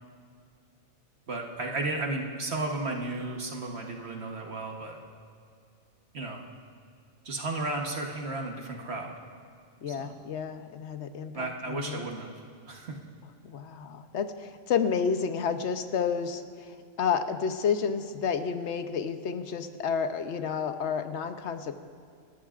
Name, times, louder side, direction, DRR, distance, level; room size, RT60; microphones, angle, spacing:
voice 1, 1.3-5.0 6.1-6.4 7.2-9.1 9.9-10.1 11.3-12.3 12.7-13.0, right 2 dB, 55° right, 1 dB, 1.4 m, -34 dB
voice 2, 9.8-12.0 13.4-16.4 17.0-21.7, left 6 dB, 60° left, 9 dB, 1.0 m, -30 dB
27.0 x 13.5 x 2.5 m, 2.4 s
omnidirectional pair, 1.4 m